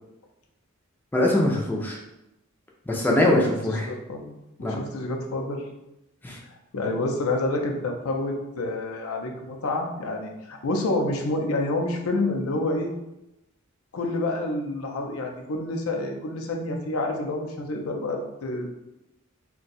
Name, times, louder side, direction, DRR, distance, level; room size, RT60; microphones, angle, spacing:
voice 1, 1.1-2.0 2.9-3.9 4.6-4.8 6.2-6.4, left 1 dB, 10° left, -2 dB, 0.4 m, -22 dB
voice 2, 3.9-4.3 4.6-5.6 6.7-12.9 13.9-18.7, left 2 dB, 80° left, 2 dB, 0.5 m, -28 dB
2.6 x 2.2 x 4.0 m, 0.90 s
head